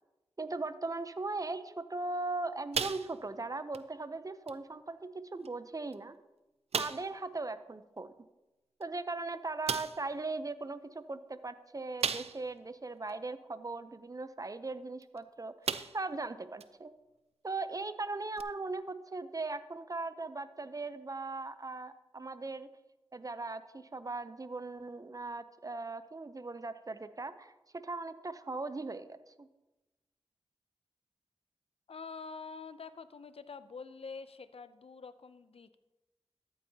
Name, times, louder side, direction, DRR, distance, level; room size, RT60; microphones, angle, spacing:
voice 1, 0.4-6.2 6.8-8.1 8.8-16.9 17.4-22.7 23.1-29.5, right 3 dB, 35° right, 12 dB, 0.6 m, -39 dB
sound 1, 2.7-3.4 3.7-3.9 4.5-4.6 5.4-5.5 5.9-6.0 6.7-7.2 8.8-8.9 9.7-10.1 12.0-12.6 13.1-13.2 15.0-15.2 15.6-16.2 16.6-16.7 18.4-18.5, right 6 dB, 85° right, 0.4 m, -35 dB
voice 2, 31.9-35.8, left 4 dB, 70° left, 13 dB, 0.5 m, -46 dB
13.0 x 8.7 x 2.8 m, 1.0 s
cardioid pair, 45°, 10 cm